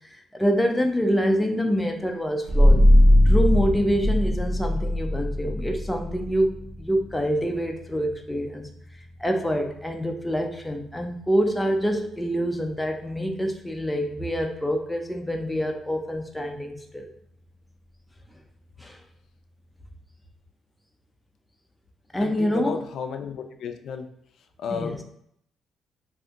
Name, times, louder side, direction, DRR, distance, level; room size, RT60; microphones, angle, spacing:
voice 1, 0.1-2.8 3.3-8.7 9.2-17.1 18.8-19.0 22.1-22.8 24.7-25.0, equal, 10° left, 3 dB, 0.6 m, -26 dB
sound 1, 2.5-13.7, left 1 dB, 40° right, 0.7 m, -23 dB
voice 2, 22.2-24.1 24.6-25.0, left 6 dB, 70° left, 7 dB, 0.3 m, -33 dB
2.7 x 2.6 x 3.5 m, 0.70 s
cardioid pair, 90°, 0 cm